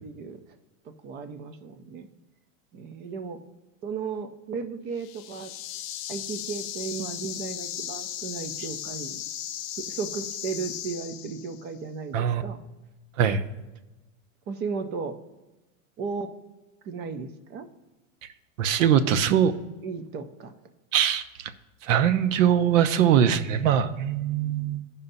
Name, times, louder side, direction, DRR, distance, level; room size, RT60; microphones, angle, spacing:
voice 1, 0.0-0.4 0.8-2.1 2.7-3.4 3.8-5.5 6.1-9.2 9.8-12.6 14.5-15.1 16.0-16.3 16.8-17.7 18.8-19.2 19.8-20.5, right 5 dB, 25° right, 9 dB, 0.5 m, -35 dB
sound 1, 5.0-11.7, left 11 dB, 30° left, 0.5 m, -36 dB
voice 2, 18.6-19.5 20.9-21.5 21.8-24.8, right 9 dB, 65° right, 12 dB, 0.7 m, -22 dB
15.5 x 5.5 x 2.6 m, 1.1 s
supercardioid pair, 145°, 42 cm